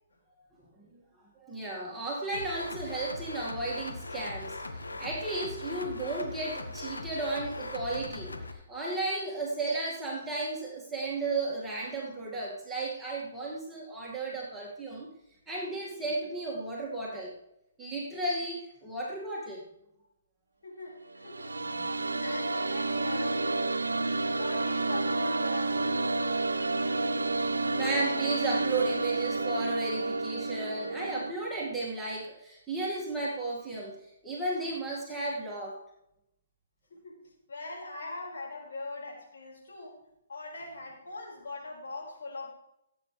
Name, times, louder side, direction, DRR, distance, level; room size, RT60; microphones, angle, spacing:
voice 1, 1.4-15.1 15.5-17.3 17.8-19.6 21.8-21.9 27.3-35.8, right 2 dB, 5° right, -6 dB, 2.1 m, -34 dB
sound 1, 2.3-8.5, left 2 dB, 85° left, 1.6 m, -40 dB
voice 2, 20.6-24.0 24.4-26.2 36.9-37.2 37.5-40.0 40.3-42.5, left 3 dB, 65° left, -2 dB, 5.2 m, -42 dB
sound 2, 21.1-31.3, right 2 dB, 85° right, 0.7 m, -30 dB
17.5 x 8.7 x 3.4 m, 0.84 s
figure-of-eight pair, 135°, 0 cm